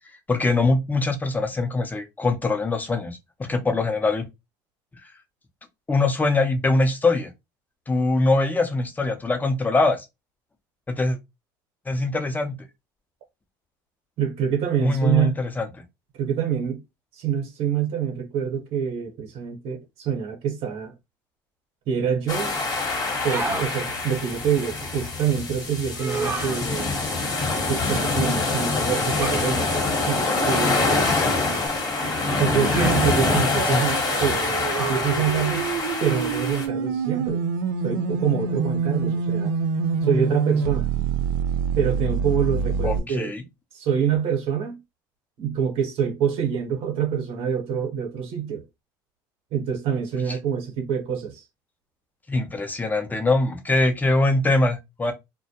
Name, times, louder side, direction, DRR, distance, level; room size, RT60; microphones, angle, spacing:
voice 1, 0.3-4.3 5.9-7.3 7.9-10.1 10.9-11.2 11.9-12.5 14.8-15.7 33.6-33.9 42.8-43.4 50.3-50.4 52.3-55.1, left 2 dB, 15° left, 0.6 m, -23 dB
voice 2, 14.2-15.3 16.2-16.8 17.1-20.9 21.9-22.6 23.2-26.9 27.7-31.0 32.3-35.7 36.0-37.4 37.8-39.5 40.0-40.9 41.8-43.3 43.7-44.8 45.4-48.6 49.5-51.4, right 8 dB, 65° right, 1.0 m, -26 dB
sound 1, 22.3-36.7, left 3 dB, 35° left, 1.0 m, -25 dB
sound 2, 23.1-23.7 25.9-26.6 29.2-29.5 30.9-31.3 32.6-33.1 34.7-35.1, right 3 dB, 20° right, 0.7 m, -31 dB
sound 3, 31.7-43.0, right 5 dB, 90° right, 0.4 m, -27 dB
2.2 x 2.1 x 2.8 m
supercardioid pair, 80°, 11 cm